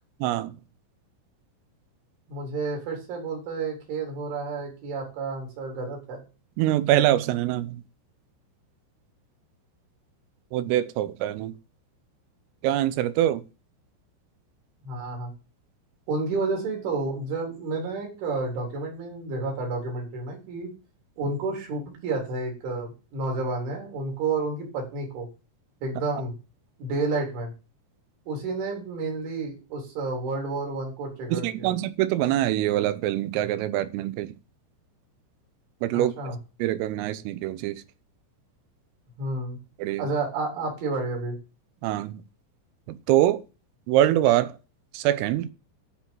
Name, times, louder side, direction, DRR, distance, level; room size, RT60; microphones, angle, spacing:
voice 1, 0.2-0.6 6.6-7.8 10.5-11.5 12.6-13.4 31.3-34.3 35.8-36.4 36.6-37.8 39.8-40.0 41.8-42.2 42.9-43.4 43.9-44.6 44.9-45.5, right 13 dB, 85° right, 3.5 m, -24 dB
voice 2, 2.3-6.2 14.8-15.3 16.1-20.7 21.2-25.3 25.8-26.3 26.8-27.5 28.3-31.7 35.9-36.4 39.2-39.6 40.0-41.4, right 3 dB, 65° right, 6.1 m, -30 dB
13.0 x 5.0 x 7.1 m
omnidirectional pair, 5.9 m